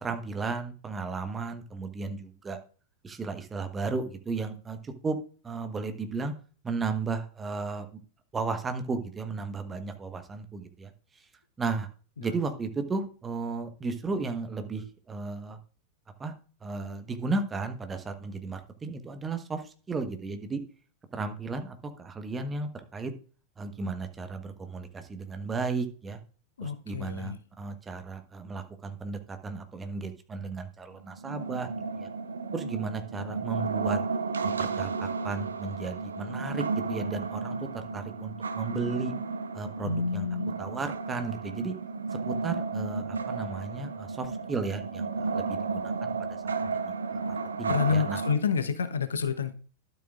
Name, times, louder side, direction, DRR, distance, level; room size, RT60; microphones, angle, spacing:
voice 1, 0.0-2.6 3.0-5.2 5.4-6.3 6.6-7.9 8.3-10.9 11.6-11.9 12.2-15.6 16.2-16.3 16.6-20.6 21.1-23.1 23.6-26.2 26.6-31.7 32.0-32.1 32.5-34.0 34.4-39.1 39.5-40.3 40.6-41.7 42.1-46.1 46.9-48.2, right 4 dB, 15° right, 1.3 m, -34 dB
voice 2, 26.6-27.4 39.8-40.5 47.7-49.5, left 5 dB, 70° left, 0.9 m, -29 dB
sound 1, 31.2-48.4, right 4 dB, 70° right, 0.7 m, -33 dB
12.0 x 7.5 x 2.5 m
figure-of-eight pair, 90°, 0 cm